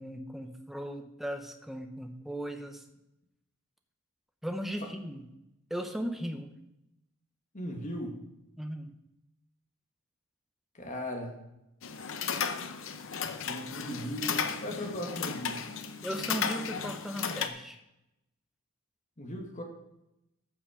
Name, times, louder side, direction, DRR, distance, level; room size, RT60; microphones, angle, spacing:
voice 1, 0.0-2.8 4.4-5.2 5.7-6.5 8.6-8.9 16.0-17.8, equal, ahead, 5 dB, 0.9 m, -37 dB
voice 2, 7.5-8.2 10.7-11.4 13.4-15.7 19.2-19.6, equal, 35° left, 2 dB, 1.9 m, -38 dB
sound 1, 11.8-17.5, left 6 dB, 65° left, 0.8 m, -34 dB
13.5 x 5.8 x 5.0 m, 0.88 s
head